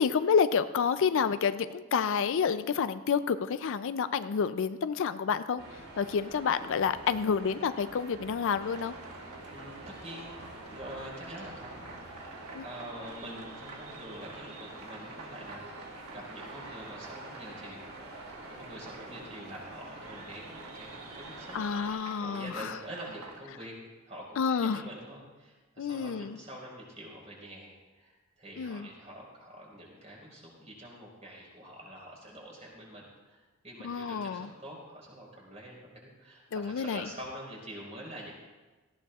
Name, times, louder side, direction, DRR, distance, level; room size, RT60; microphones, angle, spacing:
voice 1, 0.0-5.6 6.0-8.9 12.5-12.6 21.5-22.5 24.4-24.8 25.8-26.4 28.6-28.9 33.8-34.5 36.5-37.0, left 6 dB, 60° left, 12 dB, 0.4 m, -29 dB
sound 1, 5.6-21.9, right 2 dB, 70° right, 3.1 m, -47 dB
sound 2, 8.7-23.4, right 3 dB, 90° right, 1.5 m, -49 dB
voice 2, 9.5-17.8 18.6-23.7 24.0-38.3, right 1 dB, 30° right, -4 dB, 4.7 m, -46 dB
18.0 x 15.5 x 2.4 m, 1.2 s
head